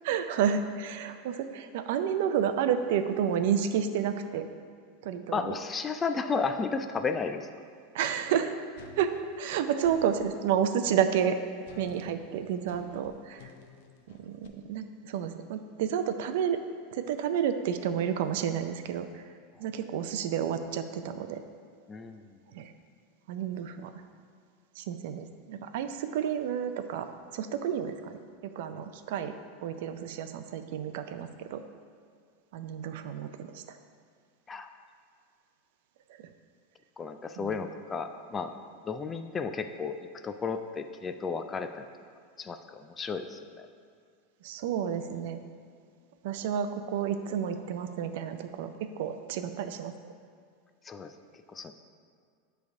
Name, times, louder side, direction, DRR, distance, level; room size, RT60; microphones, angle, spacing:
voice 1, 0.0-4.5 5.0-5.6 7.9-8.5 9.0-11.4 11.8-13.5 14.1-16.6 16.9-19.2 19.6-21.4 22.5-22.7 23.3-23.9 24.8-28.2 28.4-29.3 29.6-31.6 32.5-33.6 37.4-37.6 44.4-45.4 46.2-50.1, right 8 dB, 65° right, 9 dB, 0.5 m, -30 dB
voice 2, 5.3-7.4 21.9-22.2 34.5-34.7 37.0-38.5 38.8-39.9 40.2-41.9 42.4-43.7 50.9-51.1 51.5-51.7, left 5 dB, 15° left, 8 dB, 0.3 m, -33 dB
sound 1, 8.8-10.3 11.6-14.5, left 4 dB, 65° left, 0.7 m, -52 dB
9.4 x 3.4 x 4.6 m, 2.2 s
supercardioid pair, 155°, 0 cm